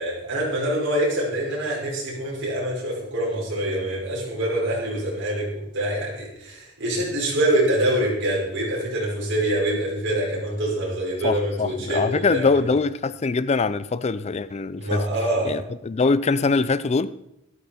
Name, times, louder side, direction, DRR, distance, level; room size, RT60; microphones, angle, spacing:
voice 1, 0.0-12.6 14.8-15.6, right 1 dB, 60° right, 5.3 m, -25 dB
voice 2, 11.2-15.0 15.4-17.1, left 4 dB, 30° left, 0.4 m, -23 dB
13.0 x 12.5 x 4.3 m
head